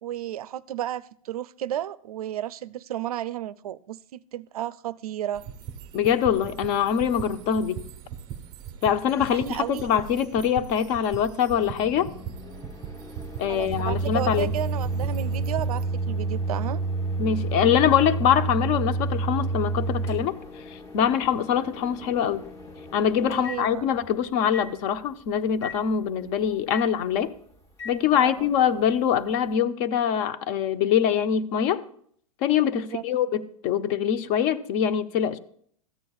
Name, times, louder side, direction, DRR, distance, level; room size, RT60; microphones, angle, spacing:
voice 1, 0.0-5.4 9.3-9.8 13.5-16.8 23.3-23.9 28.1-28.5 32.7-33.0, right 11 dB, 90° right, 0.4 m, -33 dB
sound 1, 5.3-15.8, right 8 dB, 25° right, 0.5 m, -40 dB
voice 2, 5.9-7.8 8.8-12.1 13.4-14.5 17.2-20.4 20.7-22.5 22.9-27.3 27.8-31.8 32.4-35.4, left 9 dB, 40° left, 0.5 m, -24 dB
Microwave oven, 11.6-24.1 24.5-24.7 25.6-25.8 26.7-26.9 27.8-28.0, right 3 dB, 15° left, 0.9 m, -30 dB
13.5 x 8.2 x 2.3 m
hypercardioid pair, 140°, 18 cm